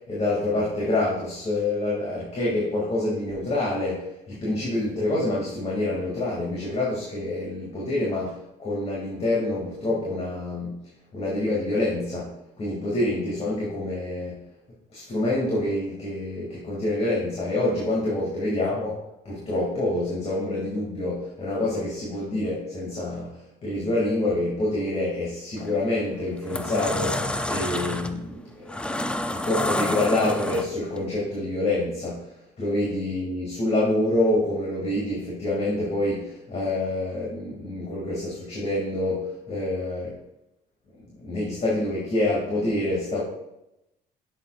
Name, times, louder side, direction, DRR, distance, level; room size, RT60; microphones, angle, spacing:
voice 1, 0.1-10.8 11.1-12.3 12.6-14.4 14.9-18.9 19.2-23.3 23.6-28.8 29.3-32.2 32.6-40.2 41.2-43.2, left 2 dB, 40° left, -5 dB, 2.5 m, -27 dB
sound 1, 25.6-25.8 26.3-31.0, left 1 dB, 5° left, 0.5 m, -29 dB
10.5 x 8.0 x 2.5 m, 0.89 s
cardioid pair, 110°, 17 cm